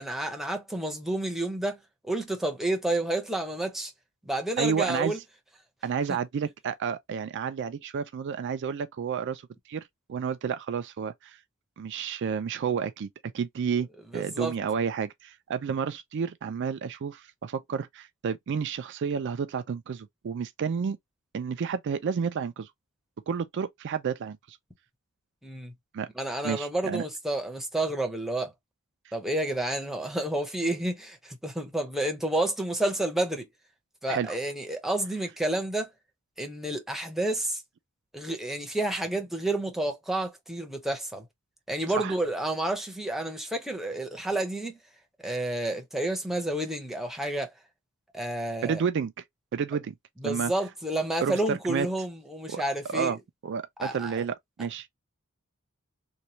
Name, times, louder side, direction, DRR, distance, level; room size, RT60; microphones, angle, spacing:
voice 1, 0.0-1.8 2.0-3.9 4.3-5.2 14.1-14.5 25.4-25.7 26.2-28.5 29.1-33.5 34.0-35.9 36.4-37.6 38.1-41.2 41.7-44.8 45.2-47.5 48.1-48.8 50.2-53.1 53.8-54.2, right 1 dB, ahead, 0.7 m, -30 dB
voice 2, 4.6-5.2 5.8-11.4 11.8-13.9 14.1-21.0 21.3-22.7 23.3-24.6 25.9-26.1 26.4-27.1 34.1-34.4 41.9-42.1 48.6-49.2 49.5-49.9 50.2-50.5 51.2-51.9 52.5-52.6 52.9-53.2 53.4-54.9, right 6 dB, 55° right, 0.4 m, -31 dB
3.0 x 2.2 x 2.7 m
head